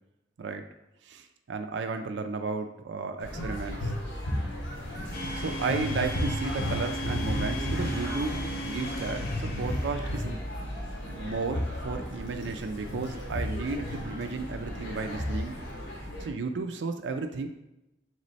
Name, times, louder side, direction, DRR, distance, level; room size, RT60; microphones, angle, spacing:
voice 1, 1.0-3.9 5.4-9.2 9.6-10.4 11.1-15.6 16.2-17.5, right 4 dB, 85° right, 6 dB, 0.4 m, -33 dB
sound 1, 3.2-16.3, left 1 dB, 90° left, 1.1 m, -34 dB
Domestic sounds home sounds, 5.1-10.6, right 1 dB, 55° left, 0.6 m, -37 dB
3.6 x 3.1 x 4.0 m, 0.91 s
head